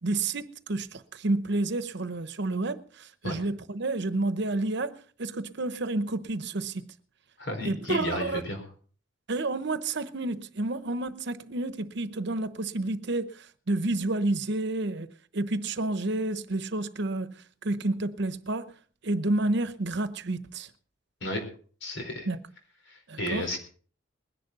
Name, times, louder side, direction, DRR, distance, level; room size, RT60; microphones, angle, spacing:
voice 1, 0.0-6.9 7.6-8.4 9.3-17.4 17.6-18.7 19.0-20.7 22.3-22.4 23.1-23.5, right 2 dB, 65° right, 1.0 m, -30 dB
voice 2, 7.4-8.6 21.2-21.4 21.8-22.3 22.9-23.6, left 1 dB, 70° left, 4.6 m, -33 dB
21.0 x 10.5 x 4.1 m
head